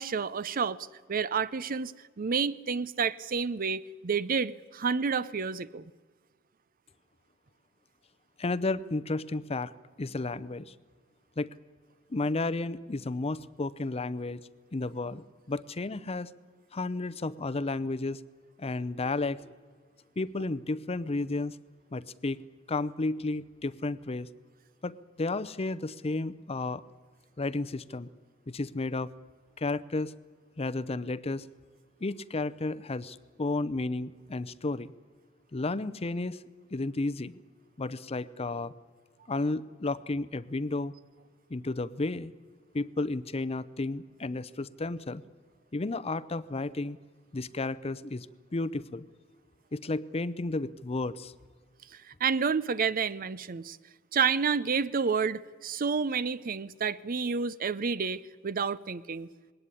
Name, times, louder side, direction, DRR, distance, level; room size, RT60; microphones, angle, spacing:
voice 1, 0.0-5.8 51.9-53.8 54.1-59.3, right 5 dB, 45° right, 0.6 m, -30 dB
voice 2, 8.4-9.7 10.0-10.7 11.4-11.5 12.1-14.4 14.7-16.3 16.7-18.2 18.6-19.5 20.2-21.6 21.9-22.4 22.7-24.3 24.8-26.8 27.4-28.1 28.5-29.1 29.6-30.1 30.6-31.5 32.0-34.9 35.5-36.4 36.7-37.4 37.8-38.7 39.3-40.9 41.5-42.3 42.7-45.2 45.7-47.0 47.3-48.3 48.5-49.1 49.7-51.3, left 2 dB, 30° left, 0.6 m, -32 dB
20.5 x 18.0 x 9.8 m
head